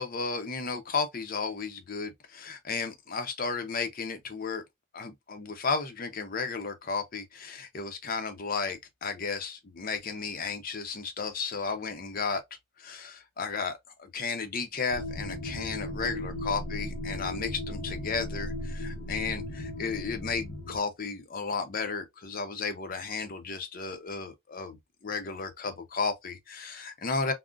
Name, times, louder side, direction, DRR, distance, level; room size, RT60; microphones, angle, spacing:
voice 1, 0.0-4.6 4.9-12.4 12.8-24.8 25.0-27.3, left 4 dB, 45° left, 0.6 m, -33 dB
sound 1, 14.9-20.8, left 1 dB, 75° left, 0.9 m, -36 dB
3.7 x 2.1 x 2.3 m
head